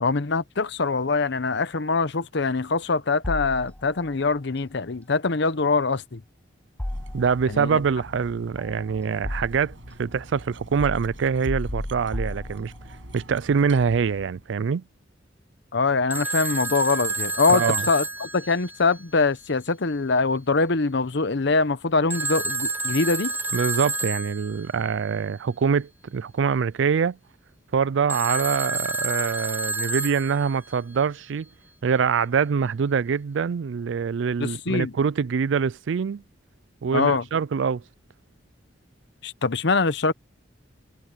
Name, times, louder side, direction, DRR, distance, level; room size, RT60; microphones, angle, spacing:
voice 1, 0.0-6.2 7.5-7.8 15.7-23.3 34.4-34.9 36.9-37.2 39.2-40.1, left 4 dB, 65° left, 0.9 m, -23 dB
sound 1, 3.2-4.1 6.8-7.7 8.6-9.9 10.8-13.0, left 1 dB, 10° left, 0.4 m, -33 dB
Cutlery silverware, 6.8-14.5, right 1 dB, 90° right, 7.0 m, -45 dB
voice 2, 7.1-12.7 13.1-14.8 17.5-17.9 23.5-27.2 27.7-31.5 31.8-36.2 36.8-37.8, right 6 dB, 70° right, 0.4 m, -24 dB
Telephone, 16.1-19.2 22.1-24.7 28.1-30.8, right 3 dB, 10° right, 0.7 m, -29 dB
head